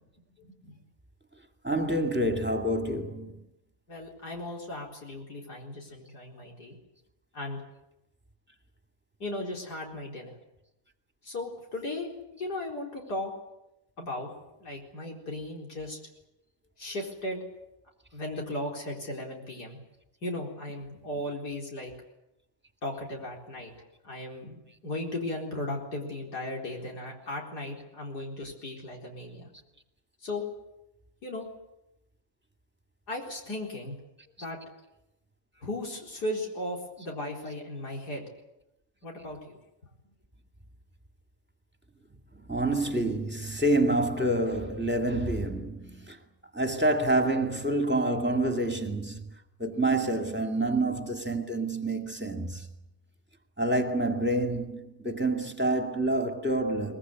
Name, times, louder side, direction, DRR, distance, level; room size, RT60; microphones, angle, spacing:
voice 1, 0.4-0.7 3.9-6.8 7.3-7.6 9.2-10.4 11.2-13.3 14.0-14.3 14.6-16.0 16.8-17.4 18.1-19.8 20.2-21.9 22.8-29.5 30.2-30.5 31.2-31.5 33.1-34.0 34.4-34.6 35.6-38.3 39.0-39.6, left 1 dB, 90° left, 4.9 m, -36 dB
voice 2, 1.6-3.4 42.5-46.2 46.5-49.2 49.6-52.7 53.6-57.0, right 1 dB, 5° right, 2.1 m, -27 dB
23.0 x 21.0 x 9.4 m
omnidirectional pair, 1.7 m